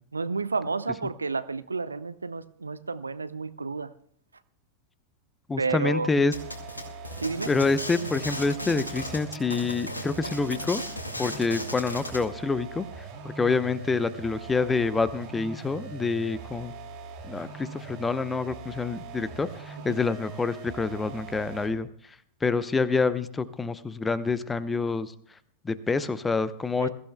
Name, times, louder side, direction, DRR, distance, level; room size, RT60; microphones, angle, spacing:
voice 1, 0.1-3.9 5.6-6.1 7.2-7.5 19.9-20.0 26.8-26.9, right 4 dB, 80° right, 15 dB, 0.6 m, -31 dB
voice 2, 5.5-6.3 7.5-10.8 11.2-12.9 13.2-16.7 17.2-21.9 22.4-25.1 25.6-26.9, left 4 dB, 15° left, 15 dB, 0.8 m, -27 dB
sound 1, 6.3-12.2, left 1 dB, 80° left, 2.2 m, -36 dB
sound 2, 6.3-21.8, right 5 dB, 40° right, 3.5 m, -42 dB
22.0 x 15.0 x 2.2 m, 0.64 s
figure-of-eight pair, 90°, 0 cm